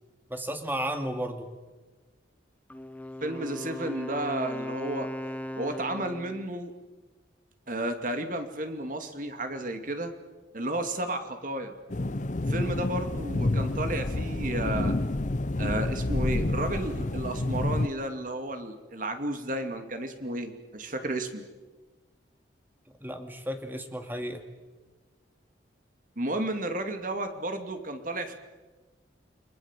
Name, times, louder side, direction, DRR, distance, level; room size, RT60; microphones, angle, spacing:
voice 1, 0.3-1.5 23.0-24.4, right 1 dB, 10° right, 6 dB, 2.3 m, -33 dB
Wind instrument woodwind instrument, 2.7-6.5, left 1 dB, 10° left, 0.9 m, -37 dB
voice 2, 3.2-5.1 5.6-6.7 7.7-10.1 10.5-11.7 12.5-15.0 15.6-21.4 26.2-28.3, right 1 dB, 45° right, 6 dB, 2.6 m, -32 dB
sound 1, 11.9-17.9, left 2 dB, 40° left, 0.7 m, -29 dB
30.0 x 22.0 x 7.5 m, 1.3 s
head